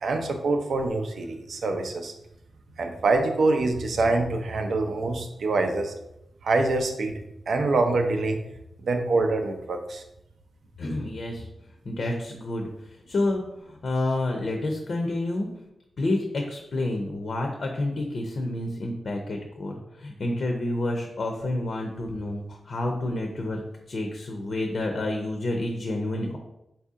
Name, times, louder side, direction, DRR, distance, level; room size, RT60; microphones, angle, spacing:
voice 1, 0.0-2.1 2.8-5.9 6.4-7.2 7.5-8.4 8.8-10.0, right 3 dB, 70° right, 5 dB, 0.5 m, -25 dB
voice 2, 10.8-11.5 11.9-15.5 16.0-23.6 23.9-26.4, left 2 dB, 55° left, 2 dB, 0.5 m, -29 dB
4.5 x 2.7 x 3.6 m, 0.84 s
wide cardioid pair, 130°, 0 cm